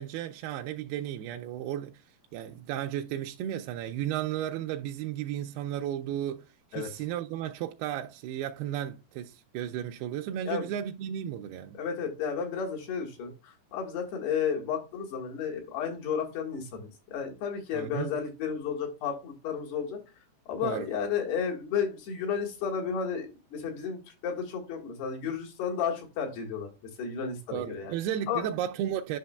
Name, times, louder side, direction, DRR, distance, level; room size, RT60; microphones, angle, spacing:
voice 1, 0.0-2.0 2.3-6.4 6.7-11.8 17.7-18.1 20.6-20.9 27.5-29.2, right 11 dB, 80° right, 2.4 m, -34 dB
voice 2, 11.8-20.0 20.5-26.7 27.0-27.9 28.3-28.5, left 7 dB, 75° left, 3.7 m, -32 dB
10.5 x 5.9 x 2.3 m
omnidirectional pair, 4.7 m